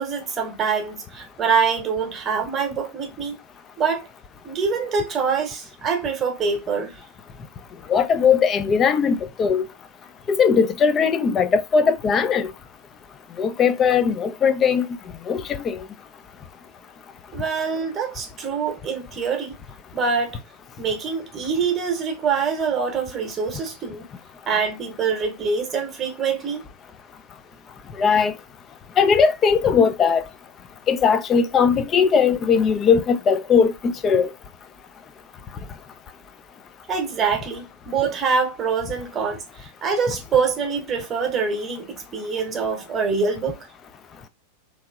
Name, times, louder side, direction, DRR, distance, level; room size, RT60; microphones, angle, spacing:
voice 1, 0.0-3.4 3.8-4.0 4.4-7.0 17.3-19.5 19.9-20.4 20.8-24.1 24.5-26.6 36.9-43.7, right 5 dB, 25° right, 0.9 m, -25 dB
voice 2, 7.9-9.7 10.3-12.5 13.4-14.9 15.3-15.8 28.0-28.3 29.0-30.2 30.9-34.3, left 6 dB, 25° left, 0.4 m, -19 dB
3.0 x 2.7 x 2.3 m
figure-of-eight pair, 90°, 0 cm